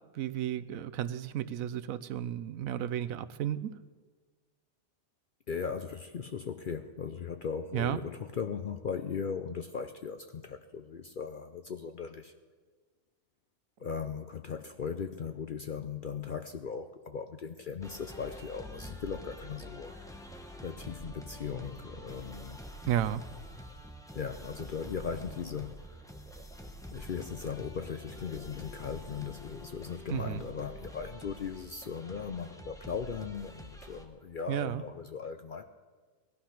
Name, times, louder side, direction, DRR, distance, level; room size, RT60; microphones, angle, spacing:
voice 1, 0.1-3.7 7.7-8.0 22.9-23.2 30.1-30.4 34.5-34.8, right 11 dB, 80° right, 13 dB, 1.1 m, -33 dB
voice 2, 5.5-12.3 13.8-20.0 20.6-22.6 24.1-25.8 26.9-35.6, left 6 dB, 55° left, 8 dB, 0.6 m, -38 dB
sound 1, 17.8-34.0, equal, 5° left, 0.9 m, -47 dB
17.5 x 12.0 x 5.8 m, 1.5 s
omnidirectional pair, 1.4 m